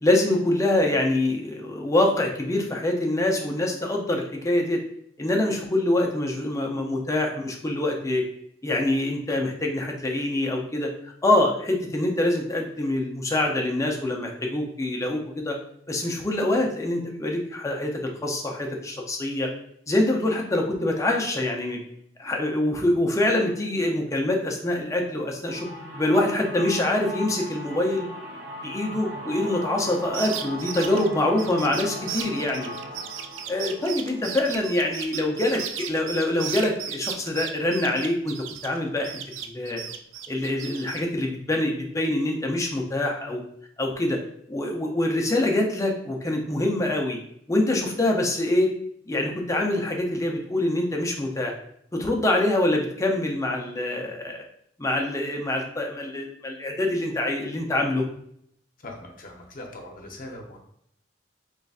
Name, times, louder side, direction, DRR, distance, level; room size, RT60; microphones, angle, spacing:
voice 1, 0.0-4.8 5.2-8.2 8.6-10.9 11.2-15.6 15.9-19.5 19.9-21.8 22.2-25.7 26.0-28.1 28.6-32.7 33.5-38.4 38.6-39.1 39.4-39.8 40.3-43.4 43.8-44.2 44.5-47.2 47.5-48.7 49.1-51.5 51.9-54.4 54.8-58.0, left 1 dB, 15° left, 1 dB, 0.5 m, -25 dB
sound 1, 25.5-35.2, equal, 70° right, 0.8 m, -38 dB
sound 2, 30.0-38.8 39.0-41.0, right 8 dB, 85° right, 0.4 m, -35 dB
voice 2, 58.8-60.6, left 1 dB, 50° left, 1 dB, 0.8 m, -40 dB
3.9 x 3.1 x 2.4 m, 0.69 s
head